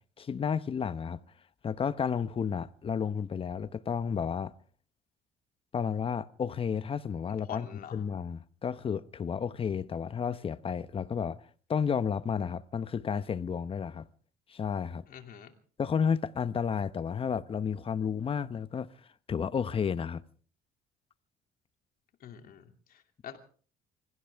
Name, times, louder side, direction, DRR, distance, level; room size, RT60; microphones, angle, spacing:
voice 1, 0.2-1.2 1.6-4.5 5.7-11.4 11.7-14.1 14.5-15.0 15.8-18.9 19.3-20.2, left 7 dB, 35° left, 0.9 m, -32 dB
voice 2, 7.5-8.0 15.1-15.5 22.2-23.4, left 9 dB, 60° left, 2.7 m, -46 dB
25.5 x 16.0 x 3.5 m
cardioid pair, 110°, 17 cm